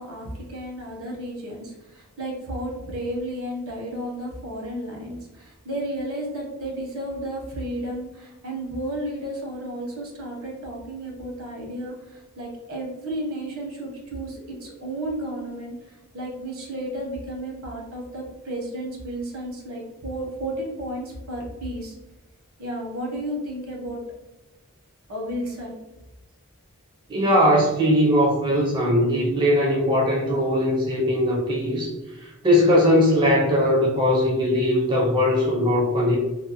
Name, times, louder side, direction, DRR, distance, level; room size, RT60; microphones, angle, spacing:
voice 1, 0.0-22.0 22.6-24.0 25.1-25.8, right 1 dB, 70° right, -1 dB, 0.9 m, -33 dB
voice 2, 27.1-36.2, equal, 20° right, -3 dB, 0.4 m, -20 dB
2.6 x 2.1 x 2.8 m, 1.1 s
head